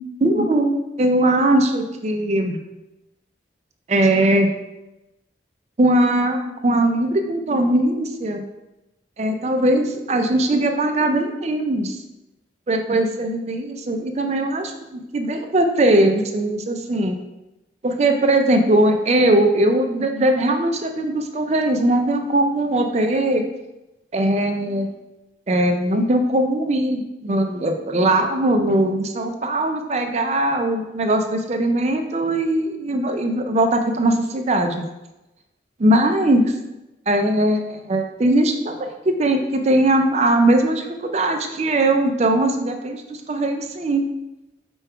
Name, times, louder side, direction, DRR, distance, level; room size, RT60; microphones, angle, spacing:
voice 1, 0.2-2.6 3.9-4.5 5.8-8.4 9.2-12.0 12.7-17.2 17.8-23.4 24.1-24.9 25.5-34.9 35.8-36.5 37.1-44.0, right 1 dB, 35° right, 5 dB, 0.4 m, -20 dB
5.1 x 2.3 x 4.6 m, 0.97 s
head